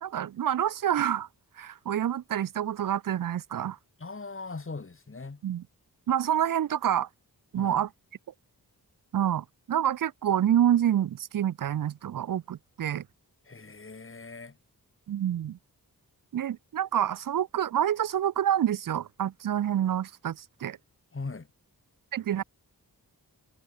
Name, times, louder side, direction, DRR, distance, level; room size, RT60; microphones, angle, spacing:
voice 1, 0.0-1.3 1.6-3.8 5.4-5.6 6.1-7.1 7.5-7.9 9.1-13.0 15.1-15.6 16.3-20.8 22.1-22.4, right 10 dB, 55° right, 0.5 m, -27 dB
voice 2, 4.0-5.4 7.5-7.8 13.4-14.6 21.1-21.5, left 3 dB, 30° left, 1.4 m, -40 dB
cardioid pair, 40°, 40 cm